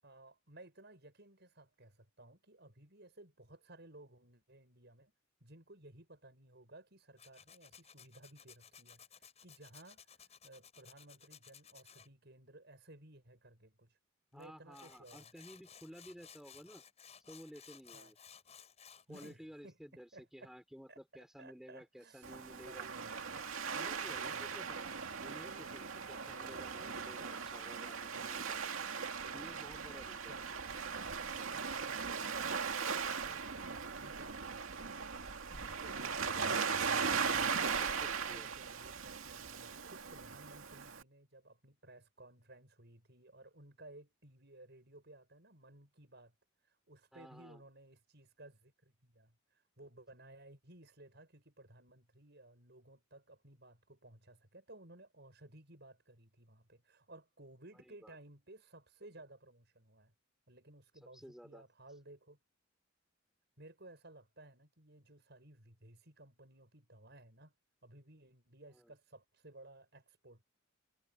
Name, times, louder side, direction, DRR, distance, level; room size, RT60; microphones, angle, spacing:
voice 1, 0.0-5.1 5.4-14.0 14.3-15.3 17.9-18.1 19.1-20.5 20.9-21.0 21.4-22.4 22.6-23.1 24.1-24.5 25.4-25.8 26.3-26.5 30.2-30.5 31.5-34.5 35.5-37.7 38.3-46.3 46.6-60.1 60.5-62.4 63.6-67.5 67.8-70.4, right 2 dB, 55° right, 6.9 m, -58 dB
Tools, 7.2-12.1 14.4-14.5 14.7-19.4, left 7 dB, 30° left, 6.8 m, -58 dB
voice 2, 14.3-16.8 17.3-18.2 19.1-22.9 23.7-28.6 29.3-30.4 37.7-38.5 47.1-47.6 57.7-58.1 61.0-61.6 68.7-68.9, equal, ahead, 4.2 m, -54 dB
Waves surf, 22.2-41.0, right 5 dB, 85° right, 2.3 m, -39 dB
head